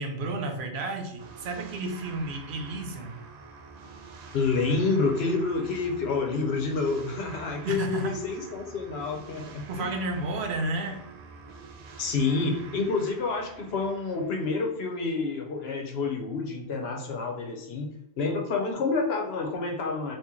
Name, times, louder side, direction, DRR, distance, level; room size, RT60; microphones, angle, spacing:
voice 1, 0.0-3.2 7.6-8.2 9.7-11.0, right 2 dB, 75° right, 4 dB, 0.9 m, -32 dB
sound 1, 1.2-15.5, right 4 dB, 60° right, 0.4 m, -47 dB
voice 2, 4.3-9.9 12.0-17.9 18.2-20.2, left 4 dB, 70° left, 2 dB, 0.9 m, -28 dB
3.0 x 2.5 x 3.6 m, 0.80 s
omnidirectional pair, 1.1 m